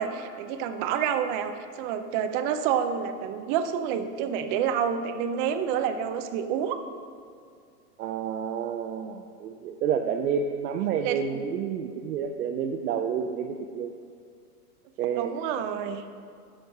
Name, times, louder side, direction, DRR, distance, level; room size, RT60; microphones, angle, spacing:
voice 1, 0.0-6.8 10.0-10.1 11.0-11.4 15.1-16.0, right 8 dB, 35° right, 9 dB, 0.5 m, -28 dB
voice 2, 8.0-13.9 15.0-15.3, right 7 dB, 70° right, 3 dB, 0.7 m, -29 dB
8.3 x 6.4 x 5.9 m, 2.2 s
hypercardioid pair, 125°, 48 cm